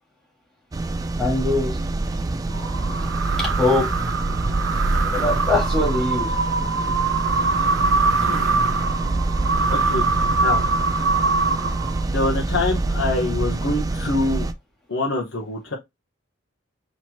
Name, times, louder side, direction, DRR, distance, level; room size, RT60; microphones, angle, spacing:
sound 1, 0.7-14.5, right 2 dB, 20° right, 0.3 m, -26 dB
voice 1, 1.2-1.8 3.4-3.9 5.1-6.3, left 2 dB, 5° left, 1.7 m, -22 dB
sound 2, 2.5-12.2, right 4 dB, 85° right, 0.6 m, -23 dB
voice 2, 8.2-8.5 9.7-10.0 10.4-10.6 11.2-11.4 12.1-14.5 14.9-15.7, left 2 dB, 70° left, 1.0 m, -25 dB
4.2 x 3.1 x 2.8 m
head